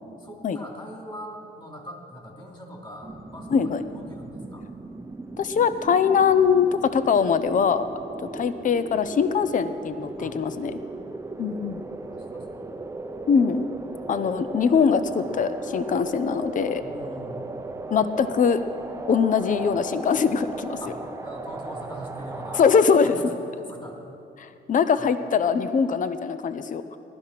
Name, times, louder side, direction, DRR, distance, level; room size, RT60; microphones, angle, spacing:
voice 1, 0.2-4.6 10.2-10.9 11.8-12.8 16.8-17.6 20.8-22.6 23.0-23.3 23.6-24.0 25.0-25.1, equal, 25° left, 0 dB, 3.0 m, -42 dB
sound 1, 3.0-22.8, right 2 dB, 15° right, 0.7 m, -37 dB
voice 2, 3.5-3.8 5.4-7.9 8.3-10.8 11.4-11.8 13.3-13.7 14.1-16.8 17.9-18.6 19.1-20.8 22.5-23.2 24.4-27.0, left 6 dB, 40° left, 12 dB, 0.7 m, -22 dB
17.5 x 12.5 x 5.8 m, 2.7 s
cardioid pair, 90°, 20 cm